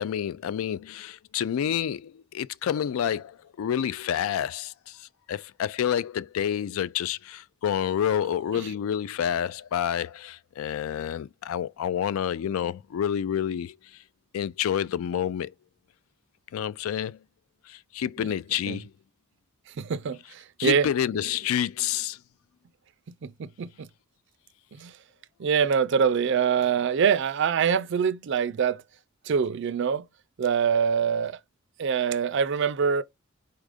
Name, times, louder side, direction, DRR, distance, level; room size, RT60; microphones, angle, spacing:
voice 1, 0.0-13.8 14.3-15.5 16.5-17.2 17.7-18.9 20.6-22.2, left 9 dB, 80° left, 0.3 m, -29 dB
voice 2, 19.8-20.9 23.2-23.9 24.8-24.9 25.4-28.8 29.3-30.0 30.4-31.4 31.8-33.0, right 7 dB, 55° right, 0.4 m, -24 dB
4.5 x 2.4 x 4.9 m
head